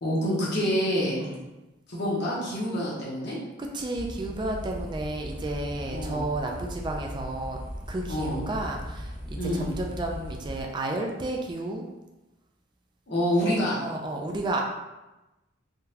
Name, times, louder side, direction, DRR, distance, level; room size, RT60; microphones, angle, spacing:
voice 1, 0.0-1.2 1.9-3.4 5.9-6.2 8.1-8.4 9.4-9.7 13.1-13.8, equal, 55° left, -5 dB, 1.0 m, -27 dB
voice 2, 3.7-7.6 7.9-11.9 13.4-14.6, right 2 dB, 25° right, 1 dB, 0.3 m, -32 dB
sound 1, 3.9-10.6, equal, 5° right, 0.7 m, -38 dB
3.7 x 2.3 x 2.7 m, 1.0 s
head